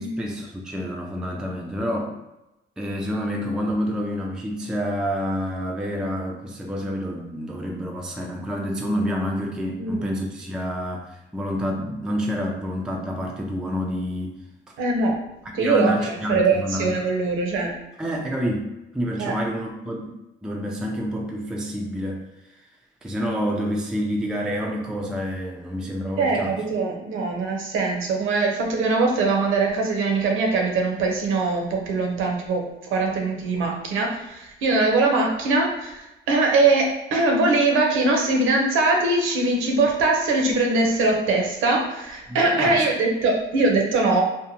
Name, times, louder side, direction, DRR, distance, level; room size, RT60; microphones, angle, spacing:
voice 1, 0.0-2.1 2.8-14.4 14.7-14.8 15.5-17.1 18.0-20.1 20.4-22.2 23.0-26.6 42.3-42.8, equal, 5° right, 0 dB, 0.3 m, -28 dB
voice 2, 14.8-15.2 15.5-17.8 19.2-19.3 26.2-36.0 36.3-44.2, right 3 dB, 85° right, 1 dB, 0.6 m, -22 dB
2.7 x 2.1 x 2.7 m, 0.95 s
cardioid pair, 90°, 20 cm